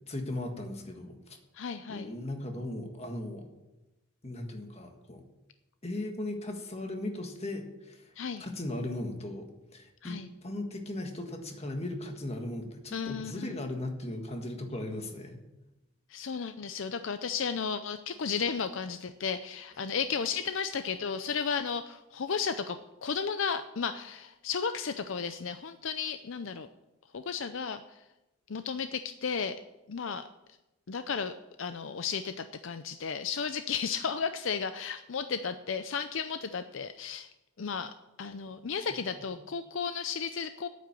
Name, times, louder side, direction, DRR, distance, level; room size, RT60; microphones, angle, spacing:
voice 1, 0.1-1.4 1.9-3.5 4.2-5.2 5.8-8.1 8.4-9.5 9.7-15.4 39.3-39.4, left 1 dB, 30° left, 4 dB, 1.6 m, -37 dB
voice 2, 1.5-2.1 8.2-8.4 10.0-10.3 12.9-13.6 16.1-22.8 23.0-26.7 27.1-27.8 28.5-29.6 29.9-30.3 30.9-31.3 31.6-37.3 37.6-37.9 38.2-40.7, left 6 dB, 65° left, 10 dB, 0.5 m, -34 dB
9.1 x 8.5 x 8.9 m, 0.99 s
head